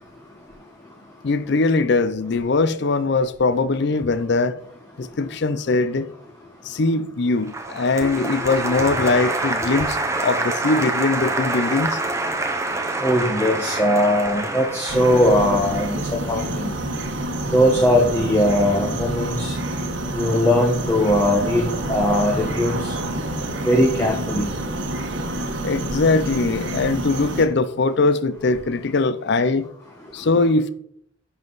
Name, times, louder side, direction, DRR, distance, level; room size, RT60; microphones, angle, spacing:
voice 1, 1.2-4.6 5.0-6.1 6.6-12.0 25.6-29.7 30.1-30.7, left 3 dB, 55° left, 0.5 m, -21 dB
Applause, 7.5-16.6, right 2 dB, 15° right, 0.8 m, -26 dB
voice 2, 13.0-16.0 16.3-16.7 17.5-19.5 20.1-22.9 23.6-24.5, equal, 10° left, 1.0 m, -20 dB
sound 1, 14.9-27.5, right 1 dB, 60° right, 1.2 m, -28 dB
10.0 x 5.5 x 3.9 m
head